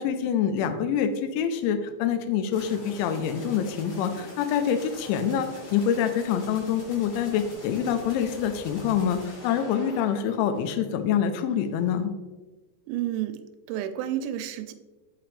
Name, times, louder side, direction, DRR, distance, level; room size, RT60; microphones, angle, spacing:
voice 1, 0.0-12.1, left 8 dB, 85° left, 8 dB, 3.0 m, -26 dB
sound 1, 2.5-11.1, left 1 dB, 50° left, 2.1 m, -44 dB
voice 2, 12.9-13.4 13.7-14.7, right 11 dB, 85° right, 9 dB, 2.9 m, -30 dB
5.9 x 5.7 x 3.2 m, 1.2 s
omnidirectional pair, 5.2 m